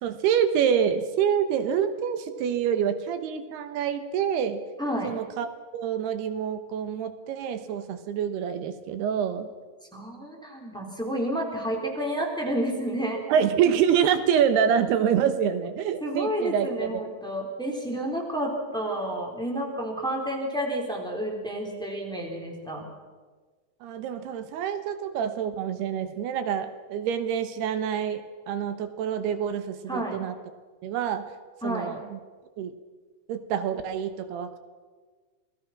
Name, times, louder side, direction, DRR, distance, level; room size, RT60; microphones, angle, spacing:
voice 1, 0.0-4.6 5.0-9.5 13.3-17.0 23.8-30.4 30.8-31.2 31.6-32.2 32.6-32.7 33.3-34.6, right 8 dB, 85° right, 10 dB, 3.2 m, -26 dB
voice 2, 4.8-5.1 9.9-13.2 16.0-22.9 29.9-30.2 31.6-31.9, right 1 dB, ahead, 0 dB, 3.5 m, -30 dB
27.5 x 19.0 x 6.1 m, 1.4 s
omnidirectional pair, 4.6 m